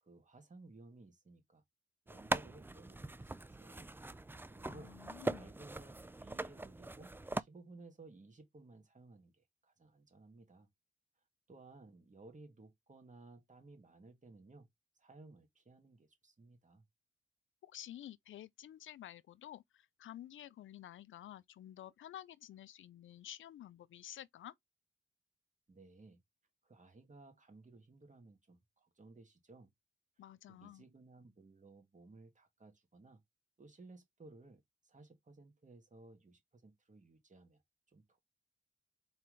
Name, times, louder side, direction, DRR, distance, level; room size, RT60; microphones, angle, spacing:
voice 1, 0.0-1.6 2.1-3.9 4.5-4.9 5.3-10.7 11.5-14.7 15.0-16.8 25.7-26.2 26.6-29.7 30.5-33.2 33.6-37.6 37.9-38.2, right 3 dB, 40° right, 2.1 m, -58 dB
sound 1, 2.1-7.4, right 2 dB, 10° right, 0.4 m, -41 dB
voice 2, 4.7-5.5 17.6-24.5 30.2-30.8, left 12 dB, 80° left, 0.5 m, -51 dB
4.3 x 3.8 x 3.2 m
cardioid pair, 55°, 20 cm